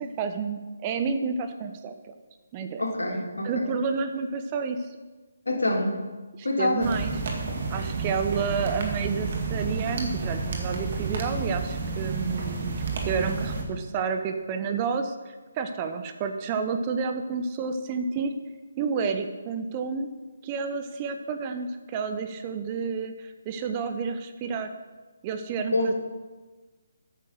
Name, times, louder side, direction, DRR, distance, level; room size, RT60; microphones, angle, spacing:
voice 1, 0.0-1.9 2.5-2.8 3.4-4.8 6.4-7.1 7.7-12.7 13.1-18.3 18.8-20.1 20.4-24.7 25.2-25.9, right 5 dB, 25° right, 7 dB, 0.8 m, -30 dB
voice 2, 2.8-3.7 5.5-6.0 6.4-6.9 25.7-25.9, left 1 dB, 80° left, 1 dB, 2.0 m, -26 dB
sound 1, 6.8-13.6, right 4 dB, 50° right, 2.0 m, -30 dB
9.2 x 6.5 x 6.3 m, 1.3 s
figure-of-eight pair, 145°, 0 cm